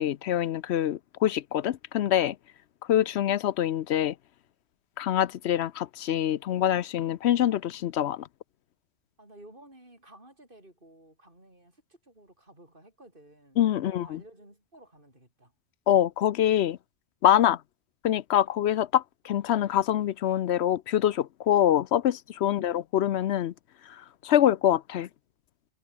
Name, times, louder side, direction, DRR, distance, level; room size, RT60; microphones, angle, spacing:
voice 1, 0.0-2.3 2.9-4.1 5.0-8.3 13.6-14.2 15.9-16.8 17.2-17.6 18.0-23.5 24.2-25.1, left 11 dB, 70° left, 0.9 m, -25 dB
voice 2, 9.2-15.5 17.3-17.5 22.4-22.8, right 1 dB, 45° right, 7.7 m, -53 dB
omnidirectional pair, 1.2 m